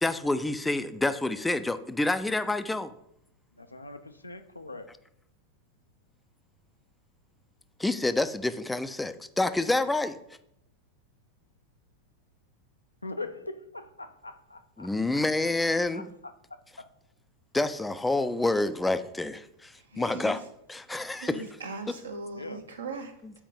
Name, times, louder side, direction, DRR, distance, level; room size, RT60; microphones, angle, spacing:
voice 1, 0.0-2.9 7.8-10.2 14.8-16.1 17.5-20.4 20.7-21.4 23.2-23.3, left 2 dB, 5° left, 0.4 m, -28 dB
voice 2, 3.6-4.9 13.0-15.2 15.9-16.0 19.9-20.2 22.3-22.6, left 2 dB, 85° left, 0.6 m, -41 dB
voice 3, 19.9-20.4 21.1-23.1, right 3 dB, 70° right, 1.1 m, -39 dB
7.0 x 4.6 x 5.4 m
figure-of-eight pair, 90°, 0 cm